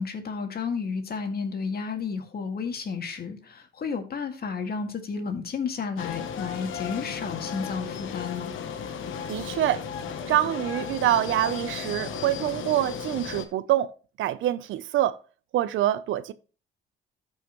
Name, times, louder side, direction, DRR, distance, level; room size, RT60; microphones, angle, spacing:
voice 1, 0.0-8.5, left 5 dB, 50° left, 2.1 m, -32 dB
sound 1, 6.0-13.5, left 7 dB, 80° left, 1.2 m, -35 dB
voice 2, 9.3-9.9 10.3-13.9 14.2-15.2 15.5-16.3, right 13 dB, 80° right, 0.7 m, -25 dB
13.5 x 5.7 x 3.1 m
cardioid pair, 90°, 20 cm